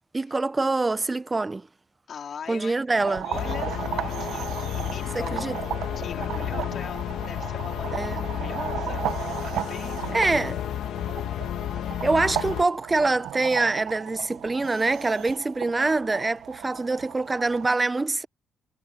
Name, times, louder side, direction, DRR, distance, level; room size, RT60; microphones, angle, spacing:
voice 1, 0.1-1.7 2.5-3.2 5.1-5.6 7.9-8.2 10.1-10.6 12.0-18.3, right 3 dB, 20° right, 0.7 m, -25 dB
voice 2, 2.1-2.8 3.1-5.5 5.9-10.1 11.0-11.1 11.7-12.0 16.6-16.9, left 7 dB, 55° left, 4.2 m, -41 dB
sound 1, 3.0-17.7, right 12 dB, 80° right, 1.2 m, -35 dB
sound 2, 3.3-12.6, left 11 dB, 75° left, 1.9 m, -32 dB
cardioid pair, 90°, 0 cm